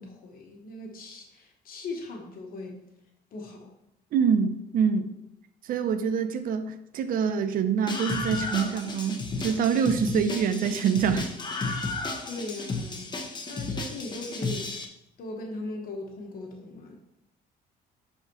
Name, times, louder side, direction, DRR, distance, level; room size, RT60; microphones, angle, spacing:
voice 1, 0.0-2.8 3.3-3.7 12.2-13.1 13.5-14.7 15.2-17.0, left 2 dB, 60° left, 1 dB, 1.3 m, -39 dB
voice 2, 4.1-5.2 5.6-11.3, right 6 dB, 55° right, 10 dB, 0.6 m, -25 dB
Screaming, 7.9-14.8, left 3 dB, 25° left, 1.0 m, -33 dB
10.5 x 4.2 x 3.0 m, 0.86 s
cardioid pair, 110°, 17 cm